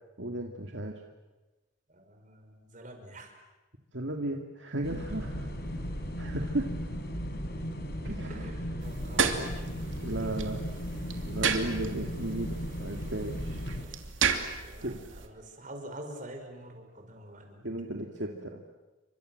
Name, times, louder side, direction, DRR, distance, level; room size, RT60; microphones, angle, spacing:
voice 1, 0.2-0.9 3.9-5.5 6.2-6.7 8.0-8.4 10.0-10.6 11.2-13.7 14.8-15.0 17.6-18.6, right 1 dB, 65° right, 2 dB, 2.2 m, -35 dB
voice 2, 1.9-3.4 8.3-10.3 13.8-14.1 14.6-17.7 18.0-18.5, right 1 dB, 40° right, 4 dB, 5.4 m, -47 dB
sound 1, 4.8-13.8, equal, 55° left, 4.2 m, -36 dB
sound 2, 8.8-15.3, right 6 dB, 80° right, 2.9 m, -33 dB
30.0 x 25.0 x 7.8 m, 1.2 s
head